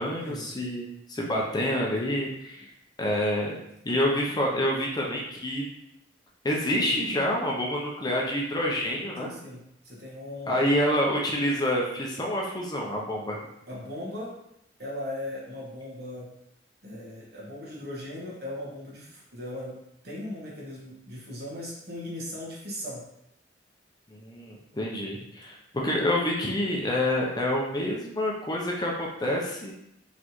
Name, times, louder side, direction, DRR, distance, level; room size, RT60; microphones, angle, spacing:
voice 1, 0.0-2.7 3.0-3.5 3.8-5.7 6.4-9.3 10.5-13.4 24.1-29.7, left 1 dB, 20° left, -2 dB, 0.6 m, -27 dB
voice 2, 9.2-10.7 13.7-14.3 14.8-16.3 16.8-23.1, left 1 dB, 60° right, -5 dB, 1.5 m, -38 dB
4.4 x 3.3 x 3.0 m, 0.80 s
head